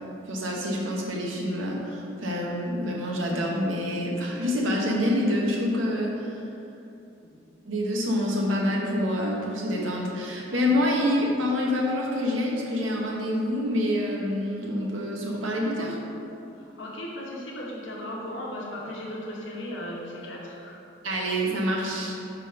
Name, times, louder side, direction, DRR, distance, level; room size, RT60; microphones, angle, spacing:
voice 1, 0.3-6.4 7.6-16.0 21.0-22.1, left 1 dB, 90° right, -2 dB, 1.0 m, -27 dB
voice 2, 7.2-7.5 16.6-20.8, left 1 dB, 80° left, -4 dB, 1.0 m, -37 dB
5.7 x 3.7 x 5.0 m, 2.8 s
head